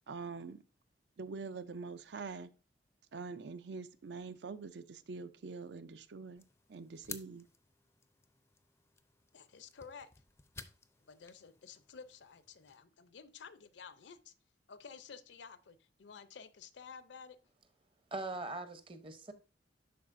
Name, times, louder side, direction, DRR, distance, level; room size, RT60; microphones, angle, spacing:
voice 1, 0.1-0.6 1.2-2.5 3.1-7.5, right 4 dB, 70° right, 0.5 m, -45 dB
sound 1, 6.4-12.8, left 5 dB, 15° left, 0.4 m, -54 dB
voice 2, 9.3-10.1 11.0-14.3 14.7-17.4, left 6 dB, 75° left, 0.5 m, -52 dB
voice 3, 18.1-19.3, right 2 dB, 30° right, 0.7 m, -41 dB
11.0 x 4.0 x 2.5 m
head